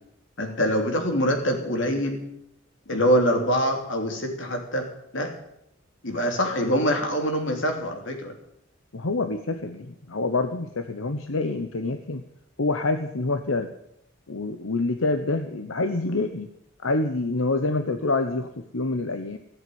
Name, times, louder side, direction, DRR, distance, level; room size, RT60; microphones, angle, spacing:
voice 1, 0.4-2.2 2.9-4.9 5.1-5.3 6.0-8.3, equal, 65° left, 4 dB, 3.1 m, -24 dB
voice 2, 8.9-12.2 12.6-13.7 14.3-16.5 16.8-19.4, left 3 dB, 85° left, 8 dB, 1.0 m, -26 dB
16.0 x 8.1 x 9.3 m, 0.78 s
head